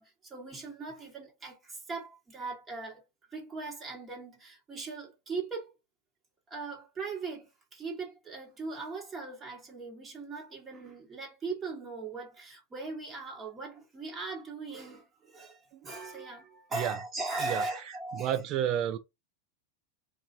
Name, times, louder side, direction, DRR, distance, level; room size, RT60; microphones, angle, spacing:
voice 1, 0.0-3.0 3.3-5.7 6.5-18.4, right 3 dB, 25° right, 1.2 m, -39 dB
voice 2, 18.2-19.0, right 10 dB, 45° right, 0.4 m, -30 dB
3.1 x 2.3 x 2.5 m
hypercardioid pair, 115°, 0 cm